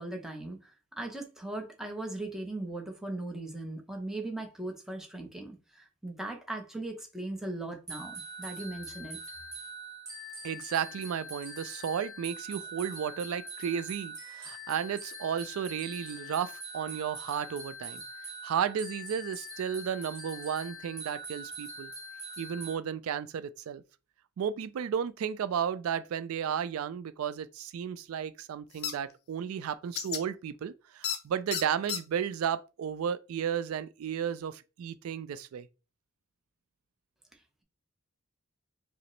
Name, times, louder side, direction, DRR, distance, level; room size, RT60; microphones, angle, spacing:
voice 1, 0.0-9.2, right 2 dB, ahead, 0.7 m, -39 dB
sound 1, 7.9-22.8, right 1 dB, 15° right, 2.0 m, -43 dB
voice 2, 10.4-18.0 18.4-21.9 22.4-23.8 24.4-35.7, right 8 dB, 85° right, 0.3 m, -33 dB
sound 2, 28.8-28.9 30.0-30.2 31.0-31.2 31.5-32.0, left 8 dB, 50° left, 0.5 m, -32 dB
4.9 x 2.0 x 3.0 m
head